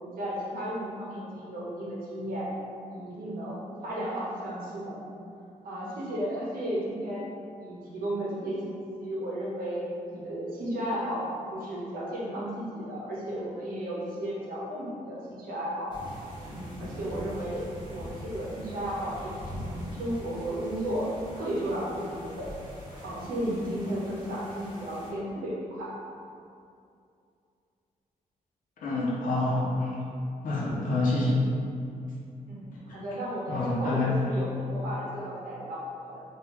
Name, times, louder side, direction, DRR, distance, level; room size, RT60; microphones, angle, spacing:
voice 1, 0.0-2.5 2.9-5.1 5.6-7.3 7.6-9.8 10.1-15.9 16.5-17.6 17.9-22.5 23.0-25.9 32.4-36.2, right 1 dB, 85° right, -6 dB, 0.9 m, -34 dB
sound 1, 15.9-25.1, equal, 35° right, 1.0 m, -42 dB
voice 2, 28.8-30.1 30.4-31.4 32.9-33.0 33.5-34.2, left 2 dB, 75° left, -7 dB, 0.8 m, -27 dB
3.4 x 2.5 x 3.0 m, 2.5 s
cardioid pair, 120°, 14 cm